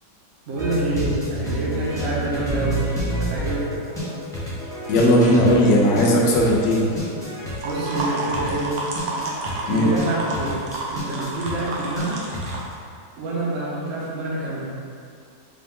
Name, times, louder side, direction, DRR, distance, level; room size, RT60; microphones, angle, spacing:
voice 1, 0.5-2.9 3.2-3.7 7.6-8.8 9.6-12.3 13.2-14.7, right 2 dB, 55° right, -6 dB, 0.9 m, -27 dB
sound 1, 0.6-12.7, equal, 5° left, 0.3 m, -29 dB
voice 2, 4.9-6.9 9.7-9.9, equal, 80° left, -3 dB, 1.4 m, -17 dB
sound 2, 7.5-12.6, right 2 dB, 75° right, 1.3 m, -30 dB
5.0 x 2.4 x 3.6 m, 2.3 s
omnidirectional pair, 1.9 m